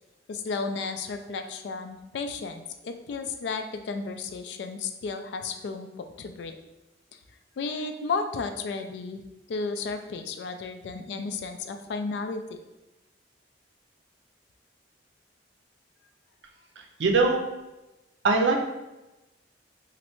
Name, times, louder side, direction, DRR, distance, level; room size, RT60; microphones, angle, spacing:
voice 1, 0.3-6.5 7.6-9.2 9.5-12.6, left 4 dB, 70° left, 7 dB, 0.3 m, -33 dB
voice 2, 17.0-17.4 18.2-18.6, right 3 dB, 85° right, 2 dB, 0.5 m, -21 dB
3.1 x 2.5 x 2.9 m, 1.0 s
head